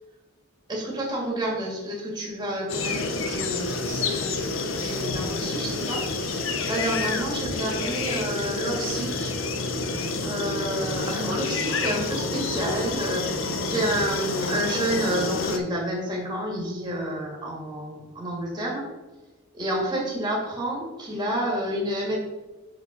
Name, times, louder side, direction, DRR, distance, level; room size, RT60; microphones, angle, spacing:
voice 1, 0.7-9.3 9.7-18.9 19.5-22.2, right 1 dB, 20° right, -3 dB, 2.2 m, -30 dB
sound 1, 2.7-15.6, left 3 dB, 70° left, 0.8 m, -28 dB
5.8 x 5.2 x 5.2 m, 1.1 s
head